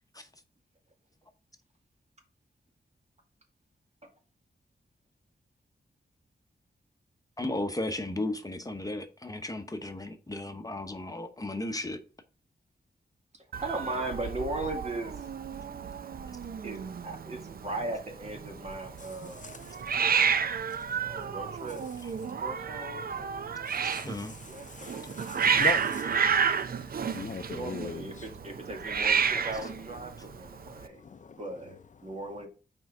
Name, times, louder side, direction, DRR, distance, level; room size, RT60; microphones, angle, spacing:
voice 1, 7.4-12.0 24.0-24.3, left 2 dB, 20° left, 0.9 m, -35 dB
voice 2, 13.3-15.3 16.6-19.6 20.7-21.8 22.4-23.0 24.4-25.2 27.4-31.0 31.4-32.5, right 2 dB, 40° right, 1.9 m, -38 dB
Hiss, 13.5-30.9, right 6 dB, 60° right, 0.5 m, -31 dB
voice 3, 23.7-24.4 24.7-26.0 27.1-28.0 31.1-31.2, left 5 dB, 50° left, 0.5 m, -38 dB
6.0 x 4.5 x 4.9 m
wide cardioid pair, 80°, 17 cm